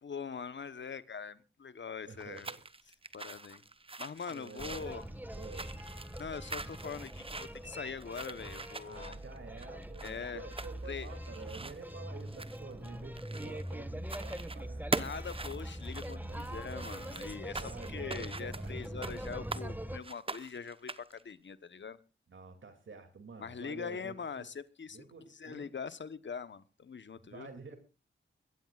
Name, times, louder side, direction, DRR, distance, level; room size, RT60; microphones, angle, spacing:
voice 1, 0.0-2.5 3.1-3.6 4.0-5.1 6.2-9.2 10.0-10.5 10.8-11.1 15.0-17.6 17.9-22.0 23.4-25.1 25.4-27.5, left 6 dB, 65° left, 1.0 m, -42 dB
voice 2, 2.0-2.6 4.3-4.9 5.4-5.7 8.8-14.9 16.1-16.4 17.5-18.7 22.3-24.5 24.9-25.7 27.2-27.8, right 4 dB, 70° right, 2.5 m, -49 dB
sound 1, 2.2-13.7 14.0-14.6 14.9-19.7 20.0-21.2, right 3 dB, 25° right, 0.9 m, -43 dB
sound 2, 4.6-20.0, right 1 dB, 10° right, 1.6 m, -43 dB
22.5 x 15.5 x 2.4 m
cardioid pair, 60°, 21 cm